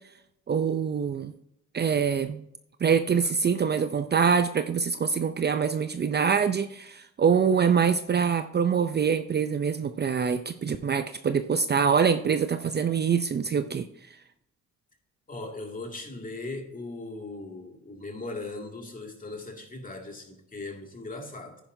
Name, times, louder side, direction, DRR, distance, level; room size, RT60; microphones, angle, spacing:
voice 1, 0.5-1.3 1.7-2.4 2.8-13.9, right 6 dB, 35° right, 9 dB, 0.6 m, -24 dB
voice 2, 15.3-21.6, left 2 dB, 25° left, 2 dB, 2.4 m, -38 dB
10.0 x 10.0 x 2.7 m, 0.78 s
cardioid pair, 90°, 30 cm